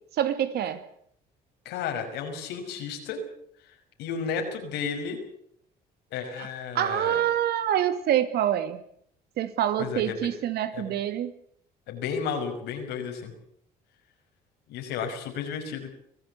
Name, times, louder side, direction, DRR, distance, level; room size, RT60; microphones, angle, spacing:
voice 1, 0.2-0.8 6.4-6.5 6.7-8.8 9.4-11.3, right 11 dB, 70° right, 11 dB, 2.4 m, -26 dB
voice 2, 1.6-3.2 4.0-5.2 6.1-7.2 9.8-10.3 10.7-10.9 11.9-13.3 14.7-15.9, left 6 dB, 85° left, 4 dB, 5.8 m, -33 dB
24.5 x 16.0 x 8.3 m, 0.67 s
cardioid pair, 110°, 17 cm